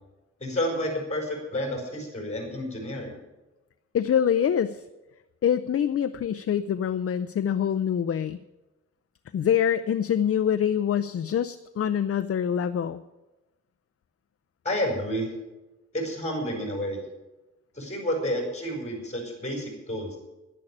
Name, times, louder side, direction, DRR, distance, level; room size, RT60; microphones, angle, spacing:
voice 1, 0.4-3.2 14.6-15.3 15.9-17.0 17.7-20.2, equal, 25° left, 2 dB, 5.3 m, -30 dB
voice 2, 3.9-4.8 5.4-8.4 9.3-13.0, left 9 dB, 50° left, 11 dB, 0.5 m, -25 dB
11.0 x 11.0 x 9.9 m, 1.1 s
wide cardioid pair, 150°, 30 cm